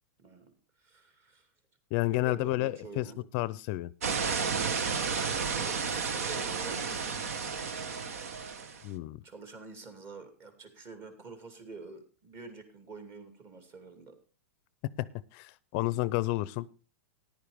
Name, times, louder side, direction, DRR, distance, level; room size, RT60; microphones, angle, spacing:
voice 1, 0.2-1.5 2.1-3.2 5.4-7.1 9.0-14.2, right 4 dB, 35° right, 7 dB, 2.6 m, -48 dB
voice 2, 1.9-3.1 3.3-3.9 8.8-9.2 15.0-16.7, left 18 dB, 45° left, 19 dB, 0.5 m, -31 dB
sound 1, 4.0-8.8, right 5 dB, 75° right, 1.2 m, -32 dB
14.0 x 10.5 x 3.5 m, 0.33 s
hypercardioid pair, 125°, 8 cm